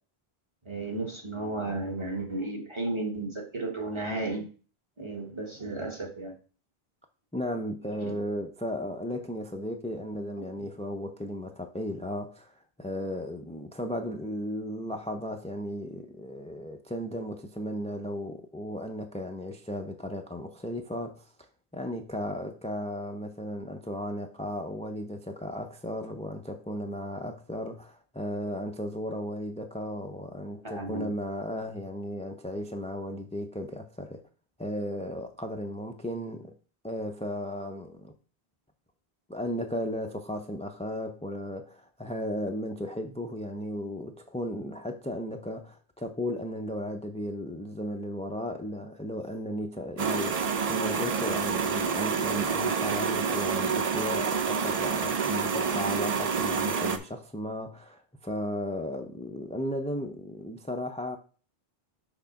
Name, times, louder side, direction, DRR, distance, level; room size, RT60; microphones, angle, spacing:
voice 1, 0.6-4.5 5.0-6.3 8.0-8.2 10.4-10.5 30.6-31.1, right 2 dB, 30° right, 1.2 m, -34 dB
voice 2, 7.3-21.5 21.7-34.2 34.6-36.6 36.8-38.1 39.3-61.2, equal, 10° left, 0.4 m, -35 dB
sound 1, 50.0-57.0, right 6 dB, 45° right, 0.6 m, -28 dB
6.1 x 3.7 x 5.7 m
omnidirectional pair, 1.0 m